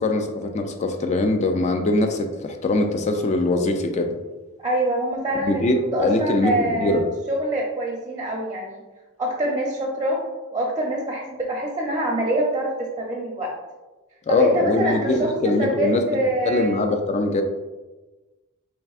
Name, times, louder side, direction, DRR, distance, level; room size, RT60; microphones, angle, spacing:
voice 1, 0.0-4.2 5.4-7.0 14.3-16.0 16.5-17.4, left 2 dB, 35° left, 5 dB, 0.3 m, -22 dB
voice 2, 4.6-7.0 7.3-8.8 9.2-10.2 10.5-13.5 14.3-16.8, right 1 dB, 15° right, -2 dB, 0.5 m, -25 dB
4.5 x 3.3 x 2.3 m, 1.2 s
head